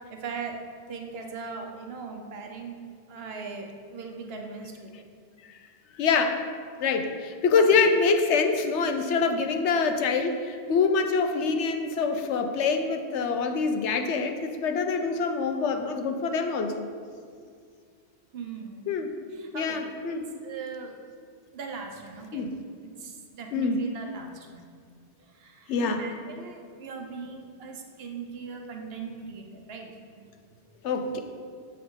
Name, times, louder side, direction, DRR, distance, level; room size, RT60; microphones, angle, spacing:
voice 1, 0.1-0.6 0.9-2.8 3.1-5.0 7.7-7.8 18.3-18.9 19.3-19.8 20.4-20.9 21.5-22.5 22.8-24.7 25.3-30.3, right 5 dB, 60° right, 3 dB, 1.1 m, -39 dB
voice 2, 6.0-6.4 6.8-16.8 18.9-19.1 19.5-20.3 22.3-22.6 23.5-23.8 25.7-26.0 30.8-31.2, left 4 dB, 75° left, 6 dB, 1.0 m, -25 dB
8.6 x 5.5 x 3.9 m, 2.1 s
omnidirectional pair, 1.2 m